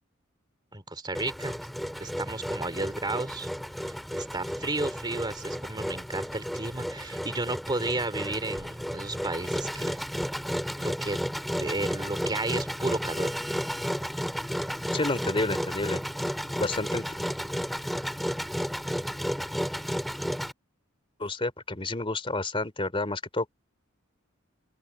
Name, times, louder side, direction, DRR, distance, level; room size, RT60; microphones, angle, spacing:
voice 1, 0.7-1.6 2.0-3.5 3.8-10.0 10.8-11.2 11.6-13.4, right 2 dB, 20° right, 2.6 m, -33 dB
Engine, 1.1-20.5, equal, ahead, 3.5 m, -33 dB
voice 2, 14.9-16.0 16.6-17.0 21.2-23.5, left 2 dB, 25° left, 3.1 m, -30 dB
open air
head